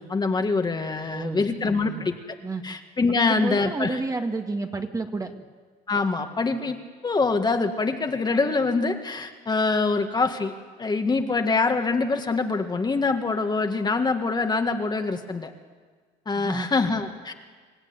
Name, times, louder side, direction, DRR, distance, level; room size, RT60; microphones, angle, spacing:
voice 1, 0.0-2.2 2.6-4.0 5.9-6.8 7.0-10.5 10.8-15.5 16.3-17.3, left 3 dB, 25° left, 5 dB, 1.9 m, -24 dB
voice 2, 1.0-2.0 2.4-2.7 3.1-5.3 16.4-16.7, right 3 dB, 20° right, 5 dB, 1.9 m, -31 dB
27.0 x 15.5 x 9.8 m, 1.5 s
cardioid pair, 110°, 17 cm